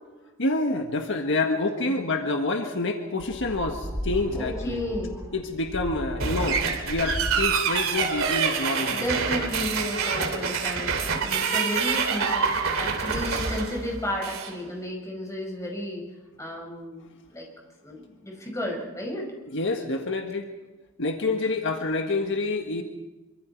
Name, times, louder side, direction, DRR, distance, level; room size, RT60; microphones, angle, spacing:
voice 1, 0.4-4.8 5.3-9.2 19.5-20.5 21.0-22.8, left 2 dB, 60° left, 4 dB, 1.6 m, -27 dB
sound 1, 3.2-8.7, equal, 10° right, 6.1 m, -36 dB
voice 2, 4.3-5.3 8.9-16.1 16.4-17.5 17.8-19.3, left 1 dB, 15° left, 0 dB, 5.6 m, -33 dB
sound 2, 6.2-14.5, right 5 dB, 80° right, 2.8 m, -26 dB
26.0 x 24.5 x 4.6 m, 1.2 s
head